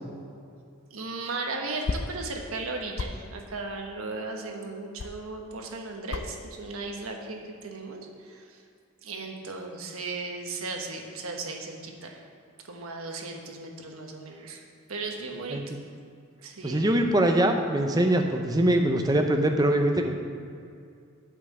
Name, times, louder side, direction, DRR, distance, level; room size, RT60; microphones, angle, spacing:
sound 1, 0.9-5.7 6.0-6.4 6.7-7.2 7.5-8.0, left 3 dB, 60° left, 0.4 m, -35 dB
voice 1, 0.9-8.6 9.0-12.2 12.6-14.6 14.9-15.8 16.4-16.9, right 3 dB, 80° right, 2 dB, 1.2 m, -36 dB
voice 2, 16.6-20.1, right 1 dB, 20° right, 4 dB, 0.7 m, -23 dB
8.5 x 5.5 x 7.3 m, 2.4 s
head